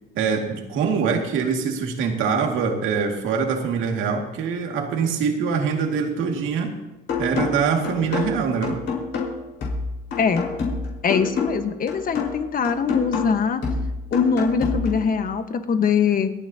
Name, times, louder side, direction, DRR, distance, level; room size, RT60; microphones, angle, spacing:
voice 1, 0.1-6.8 7.2-8.8, right 6 dB, 75° right, 2 dB, 2.3 m, -24 dB
sound 1, 7.1-15.1, left 4 dB, 65° left, 4.7 m, -28 dB
voice 2, 11.0-13.6 14.1-16.3, left 6 dB, 45° left, 7 dB, 1.4 m, -22 dB
28.0 x 9.8 x 2.9 m, 1.0 s
cardioid pair, 100°, 21 cm